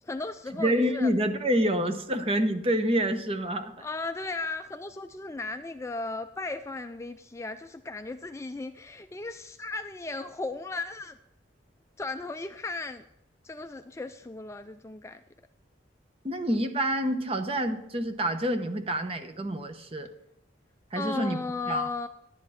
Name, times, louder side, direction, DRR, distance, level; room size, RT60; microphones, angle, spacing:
voice 1, 0.0-1.1 3.8-11.2 12.0-13.0 13.4-15.2 21.0-22.1, left 3 dB, 15° left, 8 dB, 0.3 m, -36 dB
voice 2, 0.6-3.9 16.2-20.1 20.9-21.4 21.7-21.9, equal, 30° right, 8 dB, 0.9 m, -27 dB
11.5 x 9.9 x 4.2 m, 0.81 s
head